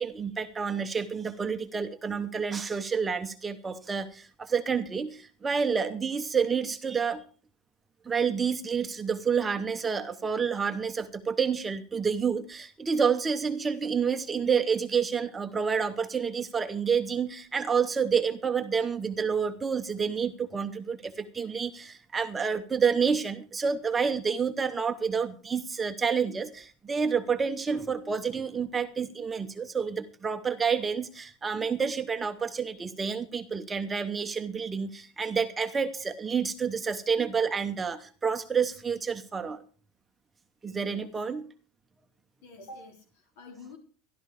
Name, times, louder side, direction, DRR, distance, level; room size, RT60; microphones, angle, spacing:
voice 1, 0.0-7.2 8.0-39.6 40.6-41.5, right 6 dB, 15° right, 7 dB, 0.8 m, -29 dB
voice 2, 27.3-27.6 40.7-41.1 42.4-43.8, left 1 dB, 75° left, 4 dB, 3.9 m, -47 dB
14.5 x 12.0 x 4.8 m, 0.39 s
supercardioid pair, 165°, 0 cm